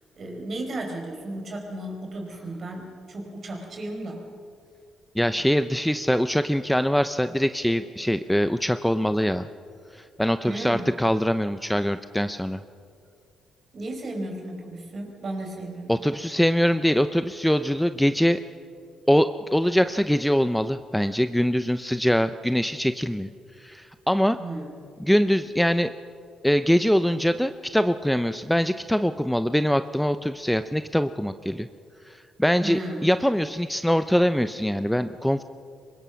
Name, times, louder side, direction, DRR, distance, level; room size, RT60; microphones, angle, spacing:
voice 1, 0.2-4.3 10.4-10.9 13.7-16.0 24.4-24.8 32.6-33.0, right 1 dB, 45° right, 2 dB, 5.2 m, -34 dB
voice 2, 5.2-9.5 9.9-12.6 15.9-18.4 19.1-23.3 23.6-24.4 25.0-25.9 26.4-31.7 32.1-35.4, equal, 5° left, 11 dB, 0.6 m, -23 dB
24.0 x 21.5 x 6.3 m, 2.3 s
cardioid pair, 90°, 0 cm